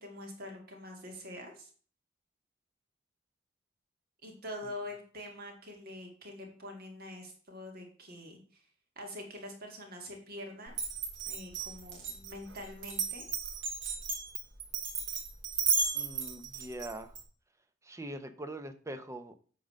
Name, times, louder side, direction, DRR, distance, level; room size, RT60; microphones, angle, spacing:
voice 1, 0.0-1.7 4.2-8.6 9.0-10.7 11.3-13.2, left 1 dB, 50° right, 2 dB, 2.1 m, -45 dB
Glass, 10.7-17.2, right 5 dB, 85° right, 2.9 m, -34 dB
voice 2, 15.9-17.1 17.8-19.3, right 1 dB, 15° right, 9 dB, 0.7 m, -42 dB
8.8 x 3.9 x 6.4 m, 0.43 s
head